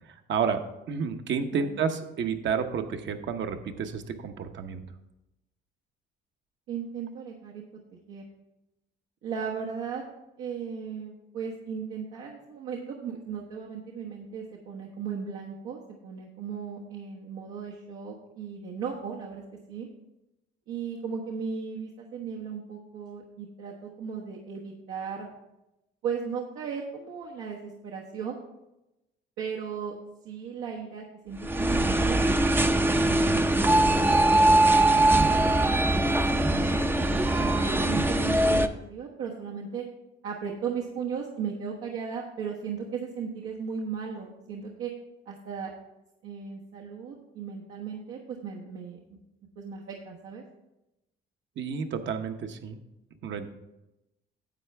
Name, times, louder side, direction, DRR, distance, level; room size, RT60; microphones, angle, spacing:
voice 1, 0.1-0.6 0.9-4.9 51.6-52.8 53.2-53.5, right 6 dB, 60° right, 6 dB, 1.0 m, -30 dB
voice 2, 6.7-7.6 8.1-8.2 9.2-10.0 10.4-19.4 19.7-19.9 20.7-25.3 26.0-28.4 29.4-29.9 30.2-32.2 33.1-34.6 36.0-39.8 40.2-44.9 45.3-45.7 46.2-49.0 49.6-50.4, right 6 dB, 90° right, -3 dB, 1.3 m, -36 dB
sound 1, 31.4-38.7, right 1 dB, 10° right, 0.5 m, -22 dB
10.5 x 7.6 x 3.4 m, 0.92 s
cardioid pair, 105°, 21 cm